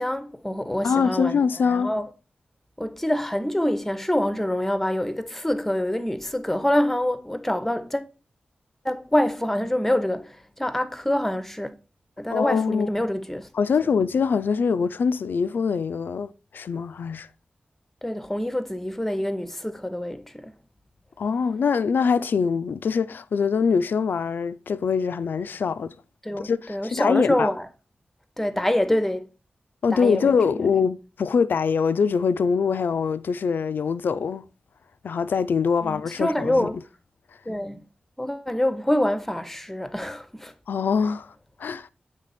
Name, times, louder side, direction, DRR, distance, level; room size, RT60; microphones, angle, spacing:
voice 1, 0.0-2.1 2.8-8.1 8.8-11.7 12.2-13.5 18.0-20.6 26.2-27.7 28.4-29.3 29.9-30.7 35.8-36.8 37.5-37.8 38.2-40.5, left 1 dB, 10° left, 0.7 m, -26 dB
voice 2, 0.8-1.9 12.3-12.9 13.6-17.3 21.2-25.9 26.4-27.5 29.8-34.5 35.0-36.7 40.7-41.3 41.6-41.9, left 6 dB, 85° left, 0.3 m, -23 dB
8.1 x 3.4 x 4.1 m
wide cardioid pair, 85°, 3 cm